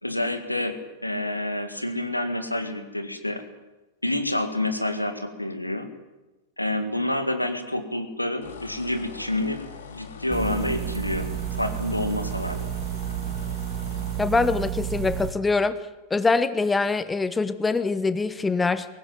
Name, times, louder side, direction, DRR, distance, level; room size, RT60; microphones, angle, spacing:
voice 1, 0.0-3.4 4.0-5.9 6.6-11.3 11.6-12.7, left 1 dB, 85° left, 9 dB, 2.0 m, -28 dB
sound 1, 8.4-14.3, left 6 dB, 65° left, 2.6 m, -43 dB
sound 2, 10.3-15.3, right 11 dB, 30° right, 1.7 m, -31 dB
voice 2, 14.2-15.8 16.1-18.9, left 3 dB, 10° left, 14 dB, 1.1 m, -23 dB
22.0 x 18.5 x 9.2 m, 1.1 s
figure-of-eight pair, 90°, 0 cm